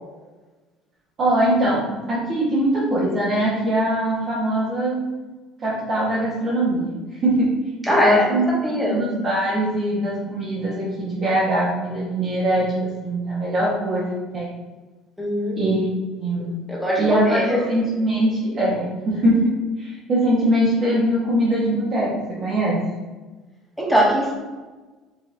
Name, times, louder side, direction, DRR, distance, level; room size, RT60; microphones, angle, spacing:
voice 1, 1.2-5.1 5.6-7.5 7.9-8.4 8.7-14.5 15.6-15.9 16.2-16.7 17.0-22.8, right 1 dB, 45° right, -8 dB, 1.4 m, -22 dB
voice 2, 7.8-9.0 15.2-15.8 16.7-17.6 23.8-24.3, equal, ahead, -4 dB, 1.5 m, -21 dB
5.4 x 3.0 x 2.7 m, 1.2 s
supercardioid pair, 100°, 0 cm